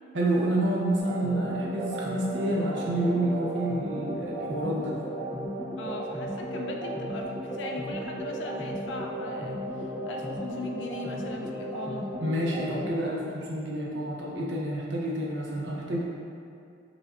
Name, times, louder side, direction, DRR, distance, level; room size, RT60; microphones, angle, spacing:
voice 1, 0.1-5.0 12.2-16.0, right 1 dB, 75° right, -3 dB, 0.6 m, -29 dB
sound 1, 1.0-12.9, right 1 dB, 20° left, 0.6 m, -35 dB
voice 2, 5.8-12.1, left 2 dB, 75° left, 1 dB, 0.4 m, -39 dB
4.8 x 2.5 x 2.4 m, 2.4 s
head